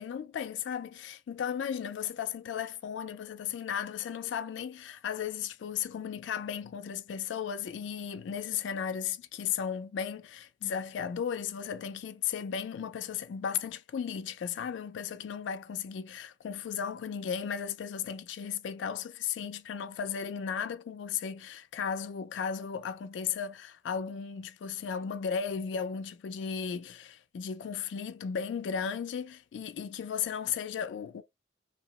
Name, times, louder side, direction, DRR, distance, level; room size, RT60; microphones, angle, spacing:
voice 1, 0.0-31.2, left 7 dB, 90° left, 0.3 m, -35 dB
2.8 x 2.0 x 2.8 m
head